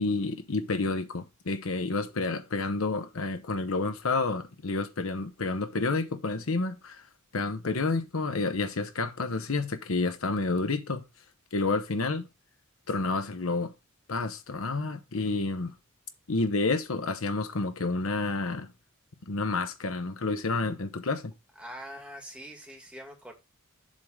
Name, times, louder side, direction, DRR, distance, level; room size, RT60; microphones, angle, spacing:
voice 1, 0.0-7.0 7.3-11.0 11.5-12.3 12.9-13.7 14.1-15.7 16.3-18.7 19.3-21.3, left 3 dB, 75° left, 0.9 m, -29 dB
voice 2, 21.6-23.3, equal, 5° right, 2.1 m, -43 dB
7.6 x 3.7 x 6.5 m
head